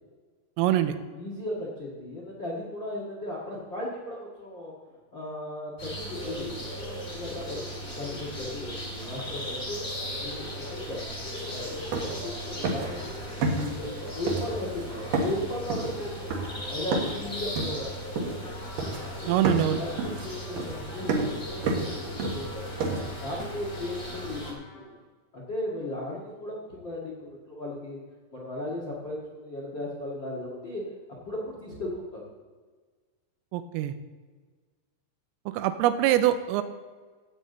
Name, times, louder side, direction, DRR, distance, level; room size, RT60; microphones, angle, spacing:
voice 1, 0.6-1.0 19.3-19.8 33.5-33.9 35.5-36.6, right 12 dB, 85° right, 10 dB, 3.4 m, -24 dB
voice 2, 1.1-4.7 5.1-7.6 8.0-9.8 10.2-11.0 11.5-12.2 12.5-13.0 13.3-16.1 16.6-17.9 18.2-18.5 19.2-19.4 19.8-19.9 20.2-22.8 23.2-25.0 25.3-28.0 28.3-30.8 31.2-32.2, left 1 dB, 80° left, -4 dB, 1.0 m, -36 dB
sound 1, 5.8-24.5, equal, 30° left, 1.1 m, -37 dB
sound 2, 11.4-11.5 11.7-12.3 12.6-13.0 13.4-14.0 14.3-14.8 15.1-17.2 17.6-18.5 18.8-19.2 19.4-23.5, right 3 dB, 65° right, 2.2 m, -30 dB
Trumpet, 18.4-25.0, left 3 dB, 65° left, 2.9 m, -50 dB
15.5 x 8.5 x 4.0 m, 1.4 s
omnidirectional pair, 5.8 m